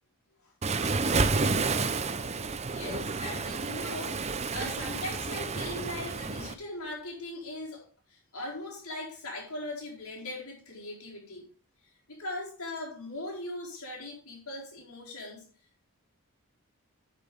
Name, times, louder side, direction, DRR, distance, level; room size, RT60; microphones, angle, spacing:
Waves surf, 0.6-6.5, right 4 dB, 30° right, 0.6 m, -30 dB
voice 1, 2.6-11.5 12.1-15.5, left 2 dB, 80° left, 4.3 m, -40 dB
10.5 x 6.2 x 5.2 m
head